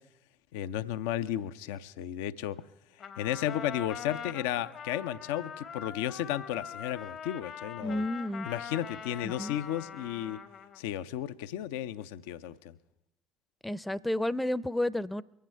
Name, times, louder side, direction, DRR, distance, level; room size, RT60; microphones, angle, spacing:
voice 1, 0.5-2.6 3.2-8.0 8.5-10.4 10.8-12.8, left 11 dB, 75° left, 12 dB, 0.4 m, -34 dB
Trumpet, 3.0-10.8, left 7 dB, 55° left, 0.8 m, -43 dB
voice 2, 7.8-8.5 9.2-9.6 13.6-15.2, left 1 dB, 10° left, 19 dB, 0.5 m, -31 dB
23.5 x 8.5 x 4.5 m, 0.91 s
hypercardioid pair, 55°, 0 cm